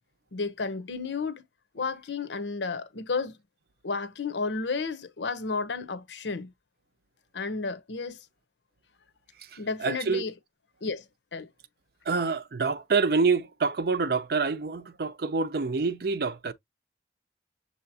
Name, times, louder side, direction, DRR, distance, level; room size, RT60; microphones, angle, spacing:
voice 1, 0.3-1.4 1.7-3.4 3.8-6.5 7.3-8.2 9.6-10.3 10.8-11.0 11.3-11.5, left 4 dB, 85° left, 0.8 m, -32 dB
voice 2, 9.4-10.2 12.1-16.5, right 4 dB, 55° right, 0.5 m, -27 dB
6.7 x 2.8 x 2.7 m
head